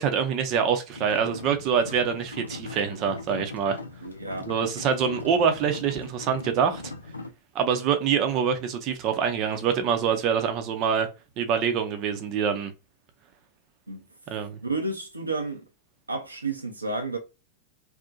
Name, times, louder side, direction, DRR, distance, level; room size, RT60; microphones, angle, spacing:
voice 1, 0.0-3.8 4.5-6.8 7.5-11.1 11.4-12.7 14.3-14.6, right 7 dB, 40° right, 0.6 m, -25 dB
sound 1, 0.9-7.3, left 3 dB, 85° left, 0.3 m, -39 dB
voice 2, 4.0-4.5 13.9-14.0 14.6-15.6 16.1-17.2, right 3 dB, 90° right, 0.5 m, -31 dB
2.6 x 2.1 x 2.3 m
figure-of-eight pair, 90°, 0 cm